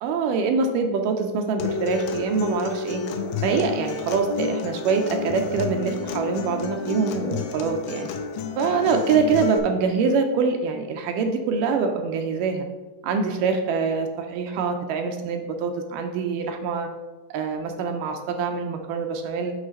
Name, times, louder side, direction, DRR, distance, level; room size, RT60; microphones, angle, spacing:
voice 1, 0.0-3.0 3.4-8.1 8.6-12.7 13.0-16.9 17.3-19.5, right 5 dB, 80° right, 5 dB, 2.1 m, -24 dB
Acoustic guitar, 1.6-9.6, left 5 dB, 85° left, 2.4 m, -30 dB
8.2 x 3.2 x 6.3 m, 1.2 s
omnidirectional pair, 4.1 m